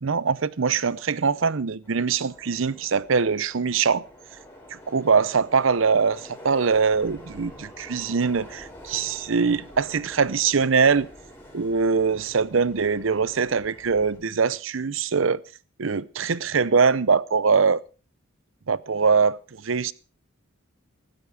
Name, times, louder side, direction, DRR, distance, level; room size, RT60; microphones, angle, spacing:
voice 1, 0.0-4.0 4.7-11.1 11.5-15.4 15.8-17.8 18.7-19.9, right 5 dB, 70° right, 0.7 m, -22 dB
Subway metro underground, 1.8-14.2, equal, 10° left, 4.6 m, -46 dB
15.0 x 13.5 x 4.8 m
head